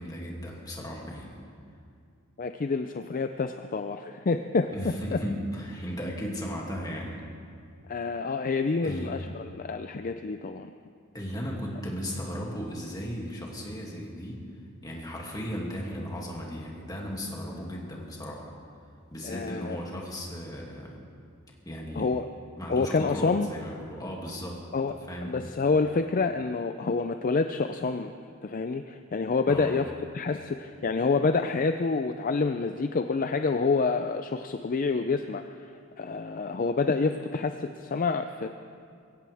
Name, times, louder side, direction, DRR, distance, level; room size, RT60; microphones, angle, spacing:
voice 1, 0.0-1.4 4.7-7.2 8.8-9.2 11.1-14.4 14.8-18.5 19.1-21.0 21.6-22.1 22.6-24.6 25.1-25.4 29.5-29.8, equal, 20° left, -2 dB, 2.5 m, -36 dB
voice 2, 2.4-4.7 5.1-5.2 7.9-10.7 19.2-19.8 22.0-22.3 22.7-23.5 24.7-24.9 25.2-28.1 28.4-29.9 30.1-35.4 36.0-38.5, left 4 dB, 40° left, 8 dB, 0.4 m, -27 dB
22.5 x 16.0 x 3.5 m, 2.3 s
head